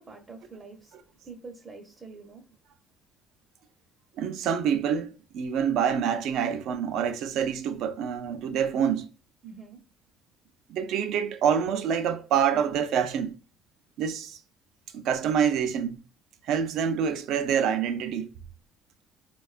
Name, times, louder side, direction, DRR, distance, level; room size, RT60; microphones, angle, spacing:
voice 1, 0.0-2.5 9.4-9.8, right 4 dB, 35° right, 0.6 m, -46 dB
voice 2, 4.2-9.1 10.7-13.4 14.0-14.4 14.9-16.0 16.4-18.3, right 8 dB, 75° right, 0.4 m, -26 dB
4.2 x 2.2 x 2.3 m
cardioid pair, 100°, 0 cm